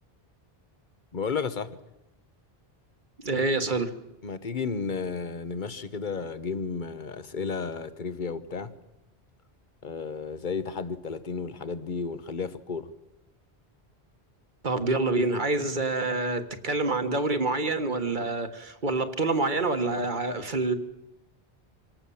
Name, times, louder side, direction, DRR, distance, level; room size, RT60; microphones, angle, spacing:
voice 1, 1.1-1.8 4.2-8.7 9.8-12.9, left 5 dB, 50° left, 1.2 m, -33 dB
voice 2, 3.2-3.9 14.6-20.7, right 3 dB, 50° right, 1.6 m, -27 dB
26.0 x 18.5 x 7.1 m
omnidirectional pair, 1.1 m